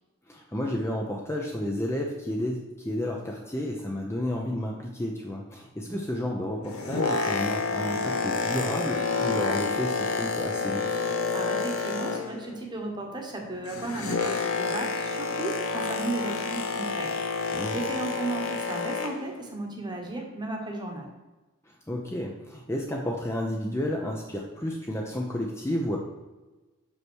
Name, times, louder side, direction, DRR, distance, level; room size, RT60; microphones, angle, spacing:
voice 1, 0.3-10.8 17.5-17.8 21.6-26.0, left 1 dB, 10° left, -1 dB, 0.7 m, -31 dB
Boat Water vehicle, 6.5-12.6 12.9-19.3 20.0-20.1, left 4 dB, 80° left, 1.0 m, -29 dB
voice 2, 11.3-17.1 17.7-21.1, right 2 dB, 20° right, 1 dB, 1.3 m, -35 dB
5.9 x 5.4 x 6.3 m, 1.1 s
head